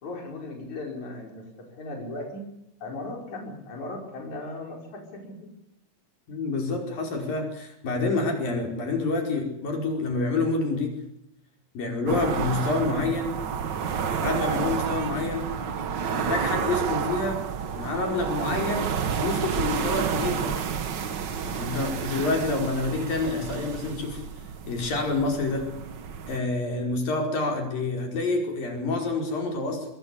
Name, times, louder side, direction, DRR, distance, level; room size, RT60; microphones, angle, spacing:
voice 1, 0.0-2.5 2.8-5.5, left 2 dB, 55° left, 1 dB, 6.6 m, -37 dB
voice 2, 6.3-11.0 11.8-13.3 14.1-15.5 16.1-17.4 17.8-20.6 21.4-24.2 24.7-25.7 26.3-29.9, left 3 dB, 80° left, 2 dB, 6.9 m, -28 dB
sound 1, 12.1-26.4, right 7 dB, 65° right, 1.1 m, -30 dB
24.5 x 21.5 x 8.5 m, 0.79 s
omnidirectional pair, 4.0 m